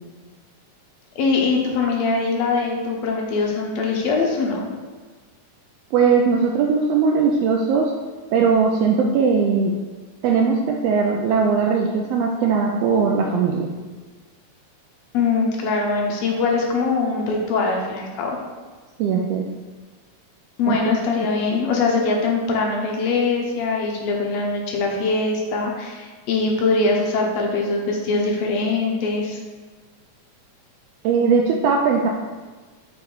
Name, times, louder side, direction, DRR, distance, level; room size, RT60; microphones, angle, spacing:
voice 1, 1.2-4.6 15.1-18.4 20.6-29.4, left 4 dB, 70° left, 0 dB, 1.9 m, -22 dB
voice 2, 5.9-7.9 8.3-9.7 10.2-13.7 19.0-19.5 20.7-20.9 31.0-32.1, right 5 dB, 80° right, 1 dB, 1.4 m, -19 dB
7.0 x 3.1 x 4.6 m, 1.4 s
omnidirectional pair, 3.3 m